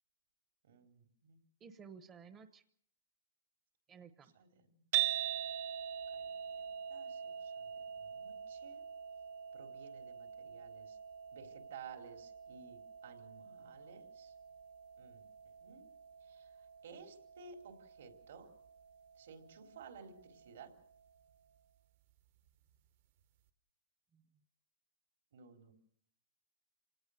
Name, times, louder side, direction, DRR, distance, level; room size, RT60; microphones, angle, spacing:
voice 1, 0.6-1.4 4.4-4.8 6.1-7.7 8.0-8.8 9.5-11.0 11.3-14.3 15.0-15.3 15.6-15.9 16.2-18.5 19.2-20.7 25.3-25.7, right 6 dB, 70° right, 4 dB, 4.1 m, -56 dB
voice 2, 1.6-2.6 3.9-4.3 24.1-24.3, right 6 dB, 15° right, 10 dB, 0.9 m, -55 dB
sound 1, 4.9-21.2, right 11 dB, 50° right, 1.1 m, -44 dB
28.0 x 18.0 x 6.7 m, 0.65 s
hypercardioid pair, 165°, 0 cm